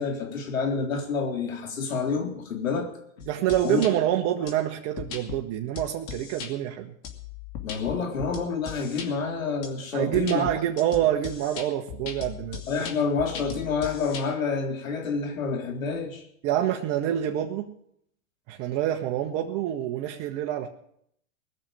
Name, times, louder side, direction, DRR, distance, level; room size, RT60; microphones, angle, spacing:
voice 1, 0.0-2.9 3.6-3.8 7.6-10.5 12.7-16.2, left 5 dB, 90° left, 3 dB, 3.7 m, -28 dB
sound 1, 3.2-3.9 4.5-4.6 5.0-5.4 5.8-6.5 7.0-9.1 9.6-9.7 10.1-14.2, left 8 dB, 35° left, 2.6 m, -38 dB
voice 2, 3.3-6.9 9.9-12.6 16.4-17.7 18.5-20.7, right 12 dB, 40° right, 3 dB, 1.3 m, -26 dB
19.5 x 6.8 x 8.9 m, 0.71 s
hypercardioid pair, 125°, 39 cm